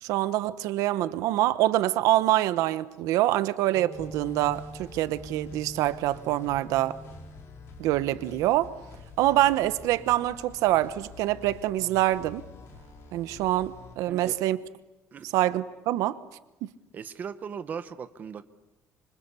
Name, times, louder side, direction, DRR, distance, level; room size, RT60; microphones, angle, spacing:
voice 1, 0.0-7.0 7.8-8.7 9.2-12.4 13.1-14.6 15.2-16.2, right 15 dB, 80° right, 1.0 m, -25 dB
sound 1, 3.7-11.0, equal, 20° left, 1.5 m, -47 dB
sound 2, 3.9-13.9, left 4 dB, 50° left, 5.0 m, -48 dB
voice 2, 16.9-18.4, right 7 dB, 30° right, 1.0 m, -38 dB
26.5 x 25.5 x 8.4 m
cardioid pair, 175°, 6 cm